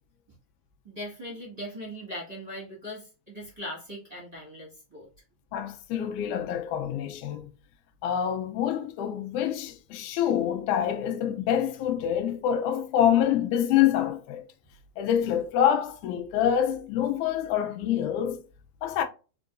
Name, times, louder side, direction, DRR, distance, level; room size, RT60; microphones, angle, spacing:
voice 1, 0.8-5.1, equal, 15° right, 1.5 m, -39 dB
voice 2, 5.5-7.5 8.0-14.4 15.0-18.4 18.8-19.0, left 10 dB, 90° left, 2.2 m, -26 dB
4.9 x 3.7 x 2.5 m
omnidirectional pair, 3.4 m